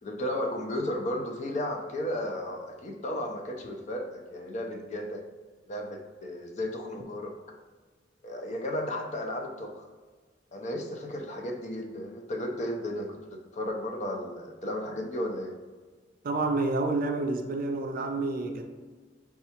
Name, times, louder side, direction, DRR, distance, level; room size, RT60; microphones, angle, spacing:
voice 1, 0.0-5.2 5.7-7.3 8.2-9.9 10.5-15.6, left 1 dB, 40° left, 1 dB, 0.5 m, -34 dB
voice 2, 16.2-18.6, right 3 dB, 50° right, 4 dB, 0.4 m, -29 dB
5.2 x 2.3 x 2.9 m, 1.4 s
head